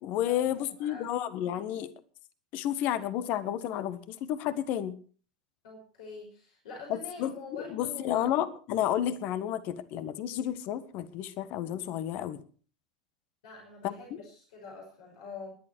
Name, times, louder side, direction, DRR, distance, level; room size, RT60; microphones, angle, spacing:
voice 1, 0.0-1.9 2.5-4.9 6.9-12.4 13.8-14.0, left 11 dB, 50° left, 13 dB, 1.5 m, -31 dB
voice 2, 0.8-1.1 5.6-8.3 13.4-15.6, left 4 dB, 65° left, 0 dB, 5.6 m, -45 dB
20.5 x 11.0 x 4.6 m, 0.42 s
hypercardioid pair, 85°, 4 cm